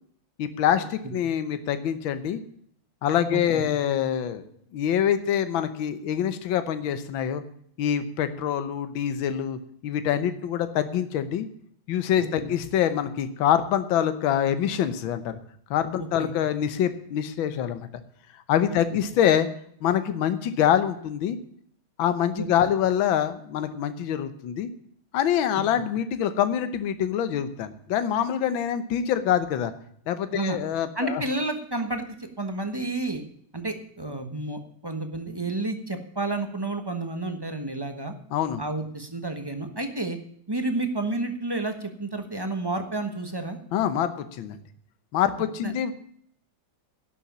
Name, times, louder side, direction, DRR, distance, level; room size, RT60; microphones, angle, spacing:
voice 1, 0.4-2.4 3.0-4.5 4.7-7.4 7.8-11.5 11.9-15.4 15.7-17.9 18.5-19.5 19.8-21.4 22.0-24.7 25.1-29.7 30.1-31.2 38.3-38.6 43.7-44.6 45.1-45.9, left 9 dB, 70° left, 11 dB, 1.7 m, -25 dB
voice 2, 3.3-3.6 12.2-12.5 16.2-16.3 22.4-22.5 30.3-30.6 30.9-33.2 33.5-38.1 38.6-40.2 40.5-43.6 45.6-45.7, right 2 dB, 15° right, 7 dB, 0.9 m, -30 dB
11.0 x 7.2 x 8.5 m, 0.64 s
omnidirectional pair, 2.3 m